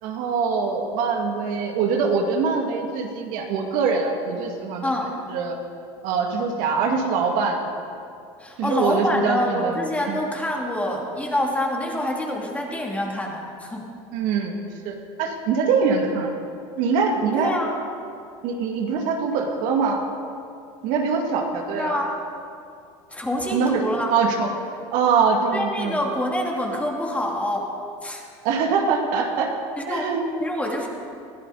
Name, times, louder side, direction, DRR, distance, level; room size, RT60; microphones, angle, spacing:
voice 1, 0.0-4.9 5.3-5.6 6.0-7.7 8.6-9.8 10.1-10.2 14.1-14.5 14.8-16.3 16.8-17.5 18.4-20.0 20.8-22.0 23.5-23.8 24.1-24.5 24.9-26.0 28.4-29.5 29.9-30.2, right 5 dB, 65° right, 2 dB, 2.1 m, -23 dB
voice 2, 4.8-5.1 8.4-13.9 17.4-17.8 21.7-22.1 23.1-24.1 25.5-27.7 28.0-28.2 29.8-30.1 30.4-30.9, left 1 dB, 10° left, 0 dB, 2.4 m, -26 dB
21.0 x 13.0 x 4.0 m, 2.4 s
supercardioid pair, 105°, 15 cm